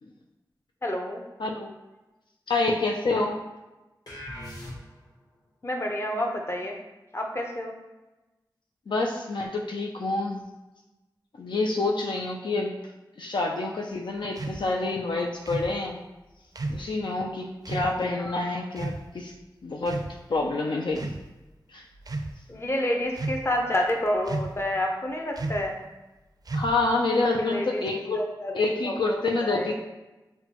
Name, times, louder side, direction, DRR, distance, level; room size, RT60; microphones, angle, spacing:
voice 1, 0.8-1.2 5.6-6.8 7.1-7.7 18.1-18.4 22.5-25.8 27.4-27.8 28.1-29.7, left 1 dB, 35° left, 1 dB, 0.7 m, -29 dB
voice 2, 1.4-1.7 2.5-3.3 8.9-10.4 11.4-12.7 13.2-16.0 16.7-19.3 19.6-20.0 20.3-21.1 21.7-21.8 26.5-28.2 28.5-29.7, left 3 dB, 80° left, 0 dB, 0.5 m, -27 dB
sound 1, 4.1-5.2, left 1 dB, 50° left, 1.2 m, -40 dB
sound 2, 14.4-14.6 15.4-15.7 16.6-16.9 17.6-17.9 18.8-19.0 19.8-20.4 20.9-21.2 22.0-22.3 23.1-23.6 24.2-24.6 25.4-25.7 26.4-26.9, right 2 dB, 55° right, 0.4 m, -32 dB
5.8 x 2.2 x 2.9 m, 1.1 s
cardioid pair, 45°, 8 cm